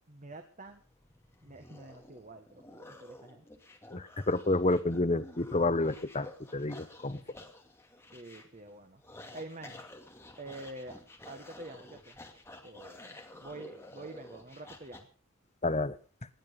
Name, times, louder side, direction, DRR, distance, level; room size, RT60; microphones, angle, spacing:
voice 1, 0.1-0.8 1.4-3.5 8.1-9.0 9.3-9.8 10.4-12.2 12.6-15.1, right 2 dB, 35° right, 6 dB, 1.7 m, -47 dB
sound 1, 0.7-15.0, left 1 dB, 10° left, 2.5 m, -52 dB
voice 2, 3.9-7.2 15.6-16.0, left 2 dB, 30° left, 11 dB, 1.1 m, -29 dB
20.0 x 11.5 x 5.3 m, 0.40 s
head